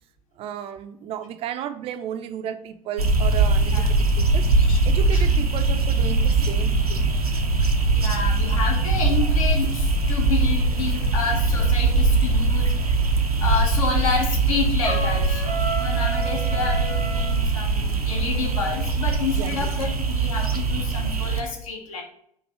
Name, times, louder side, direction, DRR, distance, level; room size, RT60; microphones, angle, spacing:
voice 1, 0.4-4.5 4.9-7.1 9.2-9.3 16.5-16.7 17.2-17.3 19.4-19.7, right 9 dB, 30° right, 10 dB, 0.4 m, -33 dB
sound 1, 3.0-21.4, right 3 dB, 85° right, 0.5 m, -21 dB
voice 2, 7.9-12.7 13.4-22.0, left 4 dB, 65° left, 1 dB, 1.0 m, -29 dB
Trumpet, 14.8-17.4, right 2 dB, 85° left, 1.9 m, -31 dB
4.4 x 2.6 x 4.3 m, 0.69 s
figure-of-eight pair, 75°, 19 cm